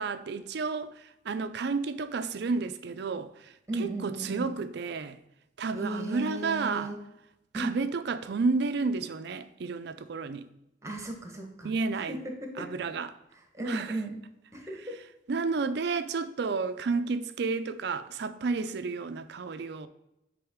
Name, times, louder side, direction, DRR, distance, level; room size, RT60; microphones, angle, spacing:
voice 1, 0.0-5.2 5.6-6.9 7.5-10.5 11.6-12.2 12.6-13.1 13.7-14.0 15.3-19.9, right 4 dB, 65° right, 0.4 m, -31 dB
voice 2, 3.7-4.5 5.8-7.0 7.5-7.8 10.8-11.7 12.1-12.7 13.5-14.2 14.5-15.0, right 1 dB, 15° right, 1.1 m, -35 dB
7.9 x 3.5 x 3.6 m
head